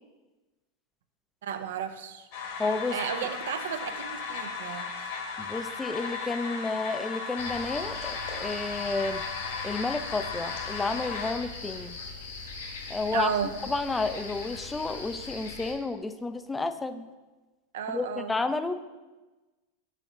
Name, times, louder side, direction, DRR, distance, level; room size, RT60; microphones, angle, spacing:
voice 1, 1.4-2.3 2.9-5.2 13.1-13.5 17.7-18.3, right 8 dB, 75° right, 9 dB, 0.5 m, -33 dB
sound 1, 2.3-11.3, left 5 dB, 65° left, 1.4 m, -36 dB
voice 2, 2.6-3.0 5.4-9.2 9.6-12.0 12.9-13.3 13.6-17.1 17.9-18.8, left 3 dB, 10° left, 11 dB, 0.4 m, -31 dB
sound 2, 7.4-15.7, left 3 dB, 85° left, 1.0 m, -40 dB
4.9 x 4.3 x 5.0 m, 1.2 s
hypercardioid pair, 105°, 0 cm